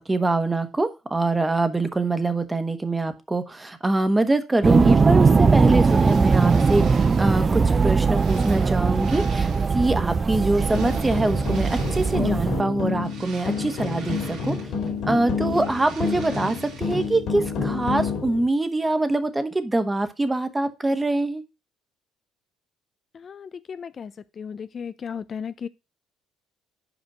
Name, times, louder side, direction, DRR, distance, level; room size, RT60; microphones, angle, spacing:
voice 1, 0.0-14.5 15.1-21.4, right 2 dB, 20° right, 1.2 m, -24 dB
sound 1, 4.6-12.6, right 4 dB, 35° right, 0.5 m, -20 dB
sound 2, 5.4-7.4 7.8-9.9 10.5-12.4 12.8-15.0 15.3-17.2, right 5 dB, 75° right, 2.2 m, -45 dB
sound 3, 10.3-18.5, left 5 dB, 65° left, 2.3 m, -29 dB
voice 2, 23.1-25.7, left 7 dB, 45° left, 0.4 m, -35 dB
5.2 x 5.1 x 5.9 m
hypercardioid pair, 65°, 0 cm